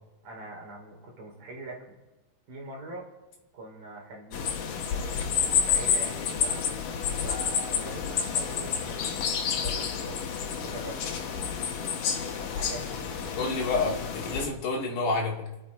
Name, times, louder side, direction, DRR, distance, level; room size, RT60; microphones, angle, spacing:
voice 1, 0.2-2.0 2.5-3.1 3.5-4.6 4.9-6.6 7.2-10.3 10.6-11.0 12.5-13.6, right 2 dB, 40° right, -1 dB, 5.2 m, -43 dB
sound 1, 4.3-14.5, left 7 dB, 75° left, 1.9 m, -29 dB
voice 2, 13.4-15.5, left 3 dB, 45° left, -2 dB, 3.2 m, -29 dB
28.5 x 9.7 x 4.9 m, 1.1 s
omnidirectional pair, 6.0 m